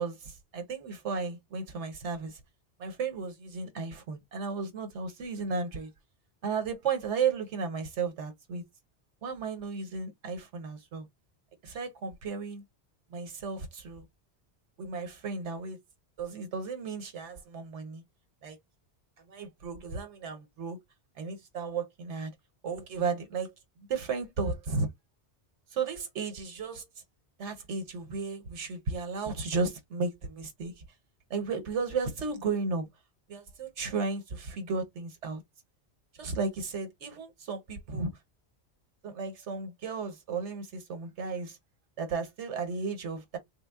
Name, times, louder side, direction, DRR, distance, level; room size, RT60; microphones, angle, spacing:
voice 1, 0.0-2.4 2.8-5.9 6.4-8.6 9.2-11.1 11.6-12.6 13.1-14.0 14.8-15.8 16.2-18.0 18.4-18.6 19.2-20.8 21.2-22.3 22.6-23.5 23.9-24.9 25.7-26.9 27.4-30.7 31.3-32.9 33.3-35.4 36.2-38.1 39.0-41.6 42.0-43.4, right 4 dB, 85° right, 1.3 m, -34 dB
3.5 x 2.0 x 3.5 m
omnidirectional pair, 1.2 m